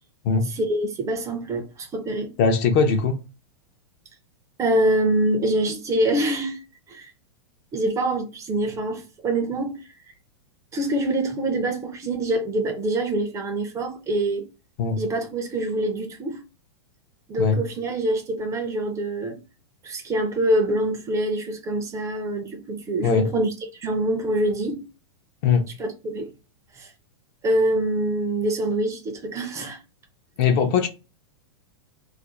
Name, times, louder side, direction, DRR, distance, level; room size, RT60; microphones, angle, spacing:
voice 1, 0.5-2.3 4.6-6.6 6.9-7.1 7.7-9.8 10.7-14.5 15.0-16.4 17.3-19.4 19.8-24.9 25.8-26.3 26.7-26.9 27.4-29.8, right 1 dB, 20° right, 0.5 m, -25 dB
voice 2, 2.4-3.2 14.8-15.0 17.4-17.6 23.0-23.3 25.4-25.7 30.4-30.9, left 5 dB, 45° left, 0.6 m, -20 dB
2.4 x 2.0 x 2.9 m
hypercardioid pair, 135°, 15 cm